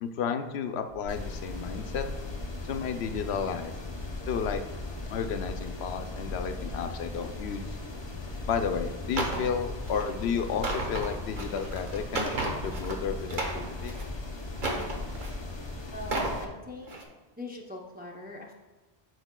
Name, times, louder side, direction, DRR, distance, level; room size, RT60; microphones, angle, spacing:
voice 1, 0.0-2.0 2.6-3.7 4.3-4.6 5.1-7.7 8.5-13.9, left 6 dB, 80° left, 7 dB, 0.8 m, -32 dB
sound 1, 0.9-11.5, left 1 dB, 75° right, 2.6 m, -48 dB
sound 2, 1.1-16.4, left 3 dB, 30° left, 0.7 m, -38 dB
sound 3, 9.2-9.5 9.8-10.1 10.5-13.0 13.3-14.1 14.6-15.4 15.9-16.4 16.8-17.0, right 2 dB, 50° right, 1.0 m, -33 dB
voice 2, 15.9-16.9 17.4-18.5, left 2 dB, 10° right, -1 dB, 0.5 m, -41 dB
12.5 x 4.8 x 2.2 m, 1.2 s
omnidirectional pair, 1.1 m